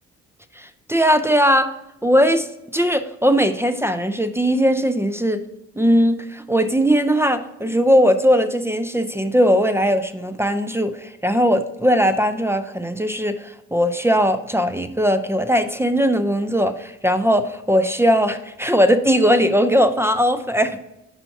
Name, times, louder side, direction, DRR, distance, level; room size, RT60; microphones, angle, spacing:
voice 1, 0.6-1.7 2.0-2.5 2.7-5.4 5.8-20.8, equal, 10° right, 10 dB, 0.5 m, -19 dB
5.5 x 4.2 x 5.7 m, 0.90 s
supercardioid pair, 60°, 30 cm